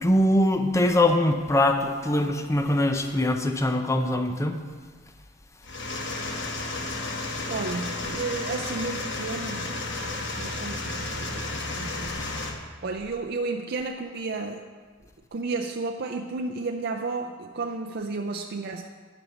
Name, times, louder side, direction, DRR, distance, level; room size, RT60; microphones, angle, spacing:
voice 1, 0.0-4.6, left 1 dB, 15° left, 6 dB, 0.6 m, -22 dB
sound 1, 5.6-12.5, left 2 dB, 65° left, 1.2 m, -32 dB
voice 2, 7.5-9.7 10.4-12.3 12.8-14.6 15.3-18.8, right 3 dB, 55° right, 2 dB, 0.5 m, -32 dB
11.0 x 5.3 x 7.1 m, 1.5 s
head